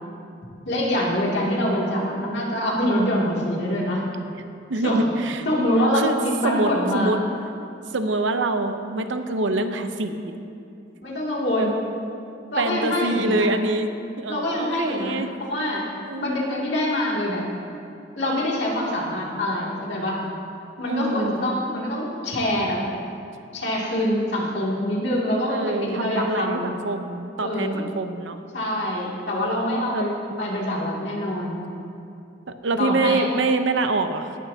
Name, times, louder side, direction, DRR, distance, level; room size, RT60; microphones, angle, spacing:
voice 1, 0.6-4.0 4.8-5.0 5.4-7.1 11.0-11.8 12.5-13.5 14.3-15.2 15.5-15.8 16.2-17.4 18.2-20.2 20.8-22.8 23.5-26.7 27.4-27.8 28.5-31.6 32.8-33.3, left 1 dB, 65° left, -4 dB, 2.5 m, -25 dB
voice 2, 4.7-5.5 5.9-6.2 6.4-7.2 7.9-10.4 11.5-11.7 12.6-13.9 14.2-15.4 16.1-16.4 20.9-21.3 25.5-28.4 29.9-30.1 32.6-34.4, right 2 dB, 80° right, 8 dB, 0.8 m, -25 dB
18.0 x 11.5 x 2.8 m, 2.7 s
head